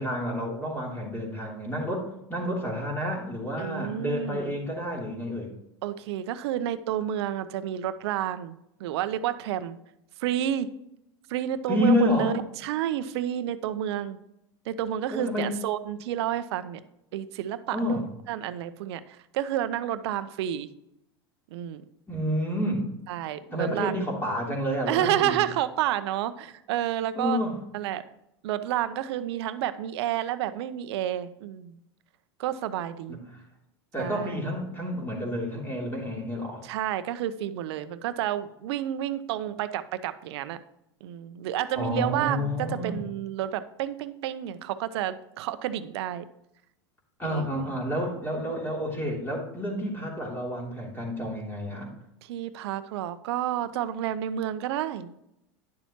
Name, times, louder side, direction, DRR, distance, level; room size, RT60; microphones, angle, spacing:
voice 1, 0.0-5.5 11.7-12.4 15.1-15.5 17.7-18.0 22.1-22.8 23.5-25.4 27.1-27.6 33.1-33.4 33.9-36.7 41.8-43.0 47.2-51.9, equal, 15° left, -2 dB, 3.1 m, -29 dB
voice 2, 3.6-4.5 5.8-9.8 10.2-10.7 11.3-14.2 14.7-16.8 17.1-20.7 21.5-21.8 23.1-24.1 24.9-27.4 27.7-28.0 28.4-31.8 32.4-33.2 34.0-34.5 36.6-40.6 41.0-46.2 47.2-47.5 52.2-55.1, right 11 dB, 70° right, 13 dB, 0.7 m, -30 dB
10.5 x 7.0 x 2.9 m, 0.83 s
hypercardioid pair, 105°, 14 cm